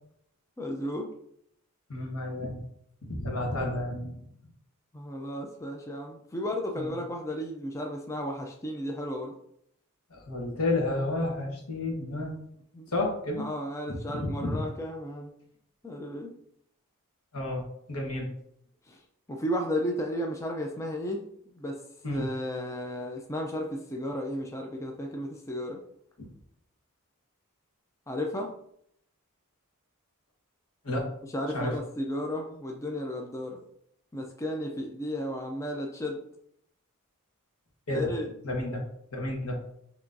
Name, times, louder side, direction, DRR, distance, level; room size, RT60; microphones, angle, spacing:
voice 1, 0.6-1.1 4.9-9.4 12.7-12.9 13.4-15.3 15.8-16.3 18.9-19.0 19.3-21.2 21.6-21.8 22.1-25.8 28.1-28.5 31.3-33.6 34.1-36.2 37.9-38.3, equal, 15° left, 2 dB, 0.4 m, -34 dB
voice 2, 1.9-2.6 3.0-4.2 6.8-6.9 10.1-12.4 12.9-13.5 13.9-14.6 17.3-18.3 22.0-22.3 30.8-31.1 31.5-31.8 37.9-38.1 38.4-38.8 39.1-39.6, left 1 dB, 80° left, 0 dB, 1.2 m, -31 dB
5.9 x 3.0 x 2.6 m, 0.70 s
head